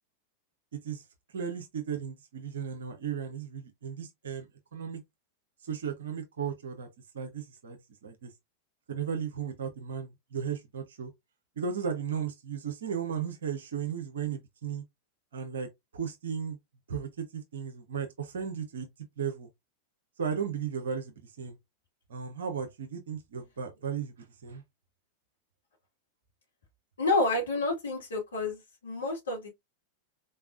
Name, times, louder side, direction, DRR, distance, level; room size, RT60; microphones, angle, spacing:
voice 1, 1.3-5.0 5.6-6.9 7.1-8.3 8.9-11.1 11.6-14.8 15.3-16.6 16.9-18.9 19.2-19.5 20.2-21.6 22.1-24.6, right 7 dB, 65° right, 0.7 m, -35 dB
voice 2, 27.0-29.5, left 2 dB, 70° left, 1.6 m, -29 dB
4.0 x 3.4 x 2.4 m
figure-of-eight pair, 90°, 0 cm